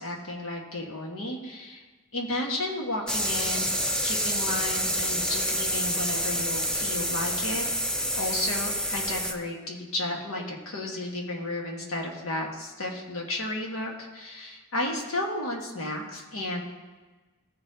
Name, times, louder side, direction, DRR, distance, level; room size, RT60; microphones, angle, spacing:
voice 1, 0.0-1.8 2.1-7.6 8.1-16.6, left 1 dB, 90° left, 0 dB, 1.5 m, -33 dB
sound 1, 3.1-9.3, equal, 5° left, 0.4 m, -28 dB
14.5 x 5.6 x 2.8 m, 1.2 s
head